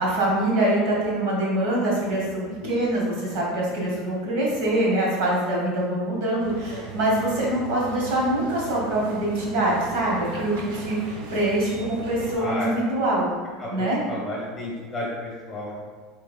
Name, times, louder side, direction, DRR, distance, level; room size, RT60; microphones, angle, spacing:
voice 1, 0.0-13.3 13.7-14.0, right 1 dB, 60° right, -4 dB, 1.4 m, -24 dB
sound 1, 6.4-12.3, right 2 dB, 90° right, 0.8 m, -38 dB
voice 2, 12.4-12.7 13.6-15.7, left 1 dB, 15° left, -5 dB, 1.1 m, -32 dB
6.5 x 3.3 x 2.2 m, 1.5 s
cardioid pair, 175°, 0 cm